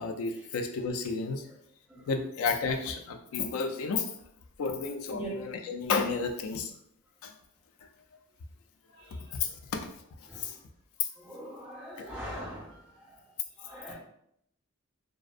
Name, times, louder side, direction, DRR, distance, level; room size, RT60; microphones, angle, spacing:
voice 1, 0.0-1.5 2.1-4.1 4.6-6.7 7.2-7.3 9.3-9.9 10.4-10.5 11.0-11.1 12.0-12.1, left 5 dB, 85° left, 5 dB, 0.3 m, -31 dB
voice 2, 11.2-12.8 13.6-13.9, right 1 dB, 5° right, -7 dB, 0.7 m, -41 dB
2.4 x 2.1 x 2.4 m, 0.73 s
head